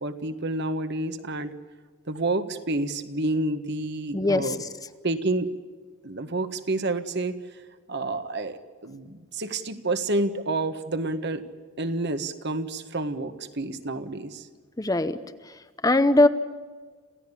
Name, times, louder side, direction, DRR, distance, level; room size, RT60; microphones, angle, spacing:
voice 1, 0.0-1.5 2.1-4.6 5.0-5.5 6.0-7.4 7.9-11.4 11.8-14.4, right 2 dB, 55° right, 9 dB, 1.5 m, -29 dB
voice 2, 4.1-4.7 14.8-15.2 15.5-15.6 15.8-16.3, left 2 dB, 15° left, 11 dB, 0.8 m, -21 dB
27.0 x 16.5 x 9.8 m, 1.5 s
head